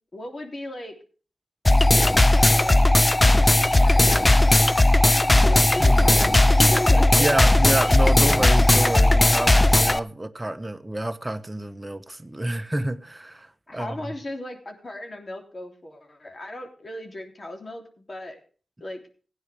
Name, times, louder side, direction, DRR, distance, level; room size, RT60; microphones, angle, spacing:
voice 1, 0.1-0.9 2.3-2.8 3.7-4.3 5.3-7.3 13.7-18.4 18.8-19.0, left 1 dB, 45° left, 3.2 m, -36 dB
sound 1, 1.6-10.0, left 1 dB, 25° left, 0.7 m, -17 dB
voice 2, 5.8-6.1 7.1-14.1, right 1 dB, 20° right, 1.2 m, -29 dB
17.0 x 9.8 x 3.5 m
cardioid pair, 50°, 0 cm